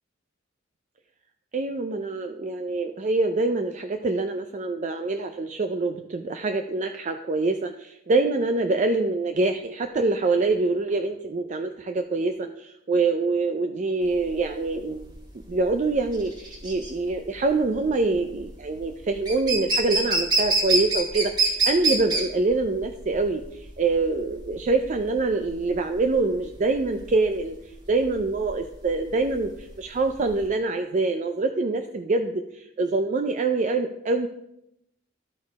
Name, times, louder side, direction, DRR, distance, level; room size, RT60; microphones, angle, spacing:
voice 1, 1.5-15.1 15.5-27.6 27.9-34.3, right 3 dB, 40° right, 5 dB, 0.4 m, -25 dB
sound 1, 14.1-30.4, right 3 dB, 20° right, 1.9 m, -27 dB
12.5 x 4.4 x 4.7 m, 0.80 s
head